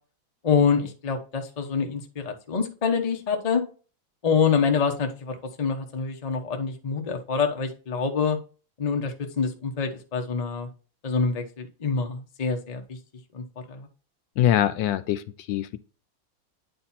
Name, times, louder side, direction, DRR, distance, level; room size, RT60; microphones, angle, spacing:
voice 1, 0.4-3.6 4.2-8.4 8.8-10.7 11.0-13.0 13.3-13.9, left 5 dB, 30° left, 0.7 m, -26 dB
voice 2, 14.4-15.8, left 11 dB, 75° left, 1.2 m, -23 dB
9.3 x 4.3 x 4.2 m
omnidirectional pair, 2.1 m